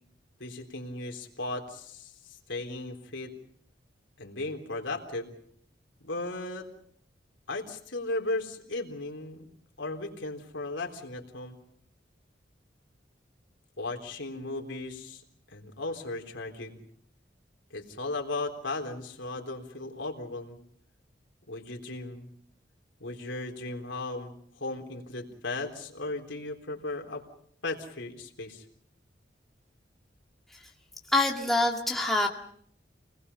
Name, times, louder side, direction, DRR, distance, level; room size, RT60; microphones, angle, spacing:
voice 1, 0.4-3.3 4.2-5.3 6.0-6.7 7.5-9.5 9.8-11.6 13.8-15.2 15.5-16.8 17.7-20.6 21.5-22.3 23.0-27.2 27.6-28.6, left 2 dB, 90° left, 2 dB, 3.7 m, -36 dB
voice 2, 31.1-32.3, left 2 dB, ahead, 0 dB, 2.1 m, -25 dB
29.5 x 20.0 x 5.6 m, 0.65 s
head